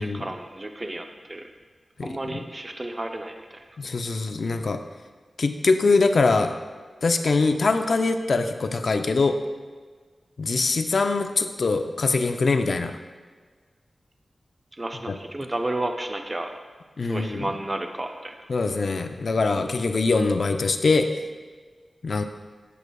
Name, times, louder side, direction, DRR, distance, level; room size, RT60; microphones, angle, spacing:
voice 1, 0.0-1.5 2.0-3.6 14.8-16.5 17.0-18.4, right 1 dB, 25° right, 5 dB, 0.5 m, -32 dB
voice 2, 3.8-4.8 5.4-6.5 7.0-9.4 10.4-12.9 15.1-15.2 17.0-17.5 18.5-21.1 22.0-22.2, left 3 dB, 65° left, 7 dB, 0.4 m, -23 dB
11.5 x 4.8 x 2.3 m, 1.5 s
wide cardioid pair, 115°, 0 cm